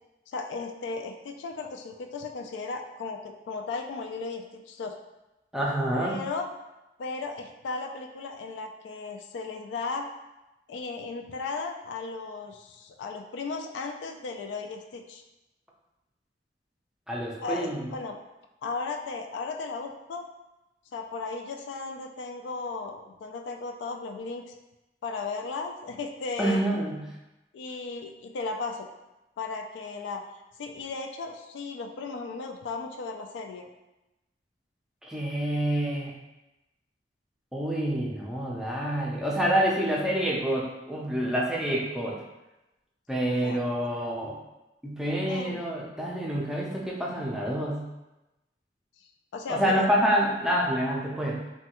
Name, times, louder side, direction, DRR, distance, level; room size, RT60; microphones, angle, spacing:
voice 1, 0.3-5.0 5.9-6.5 7.0-10.1 10.7-15.2 17.4-18.2 18.6-20.3 20.9-24.5 25.0-26.6 27.5-28.9 29.4-30.2 30.6-33.7 43.3-43.6 45.3-45.6 49.0-49.9, left 4 dB, 80° left, 5 dB, 0.3 m, -35 dB
voice 2, 5.5-6.2 17.1-17.9 26.4-27.0 35.0-36.2 37.5-42.2 43.1-44.4 44.8-47.8 49.5-51.4, right 1 dB, 5° right, -4 dB, 0.4 m, -27 dB
3.1 x 2.2 x 2.9 m, 0.97 s
head